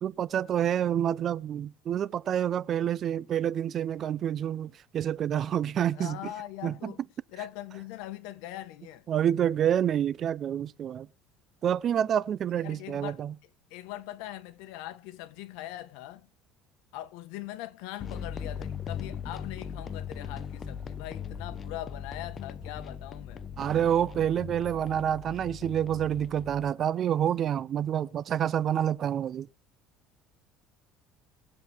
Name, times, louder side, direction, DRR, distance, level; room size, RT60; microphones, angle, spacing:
voice 1, 0.0-6.2 6.6-6.9 9.1-11.1 11.6-13.3 23.6-29.5, right 10 dB, 35° right, 0.5 m, -28 dB
voice 2, 5.8-7.0 7.3-9.1 12.5-16.3 16.9-23.4, left 14 dB, 75° left, 1.2 m, -41 dB
sound 1, 18.0-26.7, left 7 dB, 25° left, 0.6 m, -39 dB
sound 2, 20.0-25.8, left 2 dB, 5° right, 2.7 m, -56 dB
21.0 x 7.7 x 3.5 m
cardioid pair, 160°, 0 cm